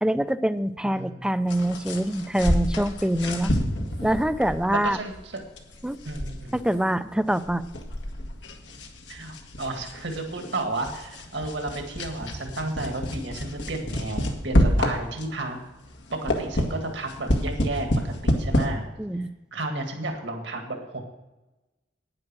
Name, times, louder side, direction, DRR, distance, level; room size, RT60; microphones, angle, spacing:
voice 1, 0.0-3.5 4.0-5.0 5.8-6.0 6.5-7.7 19.0-19.3, right 1 dB, 5° right, 13 dB, 0.4 m, -25 dB
voice 2, 0.8-1.3 4.8-5.3 6.1-6.6 9.1-15.6 16.1-18.8 19.5-21.0, right 2 dB, 75° right, 3 dB, 2.0 m, -32 dB
sound 1, 1.5-15.5 15.9-18.6, equal, 85° left, 1.8 m, -28 dB
9.8 x 9.7 x 6.1 m, 1.0 s
head